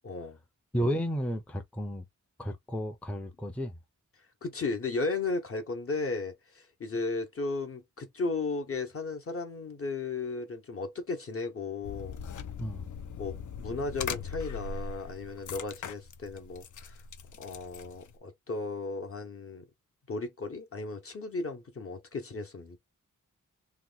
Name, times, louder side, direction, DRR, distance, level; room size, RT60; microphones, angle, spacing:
voice 1, 0.0-0.4 4.4-12.2 13.2-17.0 17.4-19.6 20.1-22.8, left 3 dB, 45° left, 0.9 m, -35 dB
voice 2, 0.7-2.1 2.4-3.8 12.6-12.9, equal, 5° left, 0.5 m, -32 dB
sound 1, 11.8-18.2, left 6 dB, 70° left, 0.5 m, -40 dB
2.9 x 2.2 x 3.8 m
wide cardioid pair, 105°, 31 cm